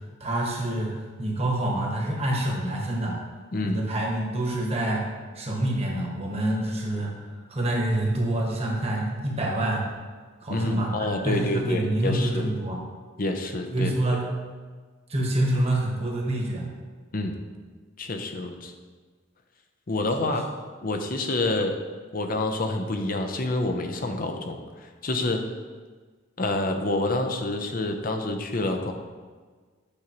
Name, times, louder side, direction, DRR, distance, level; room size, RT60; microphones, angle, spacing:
voice 1, 0.2-3.2 3.6-5.0 5.3-7.1 7.5-9.8 10.4-12.8 13.7-14.2 15.1-16.7 20.2-20.4, right 1 dB, 30° right, -1 dB, 1.2 m, -27 dB
voice 2, 3.5-3.8 10.5-12.5 13.2-14.2 17.1-17.4 18.0-18.7 19.9-20.4 20.8-21.8 22.1-25.4 26.4-28.9, left 2 dB, 45° left, 5 dB, 0.7 m, -28 dB
8.6 x 6.2 x 3.0 m, 1.5 s
head